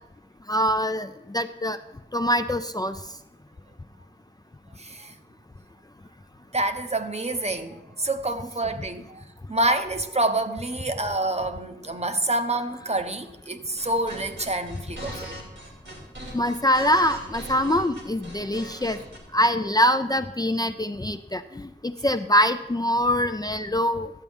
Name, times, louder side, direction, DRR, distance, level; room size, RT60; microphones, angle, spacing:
voice 1, 0.5-1.8 2.1-3.0 16.3-19.0 19.3-24.1, equal, 20° left, 0.4 m, -24 dB
voice 2, 4.8-5.1 6.5-15.4, right 2 dB, 35° right, 0.7 m, -27 dB
sound 1, 13.7-19.2, equal, 90° right, 2.5 m, -40 dB
12.5 x 8.1 x 3.6 m
wide cardioid pair, 50°, 19 cm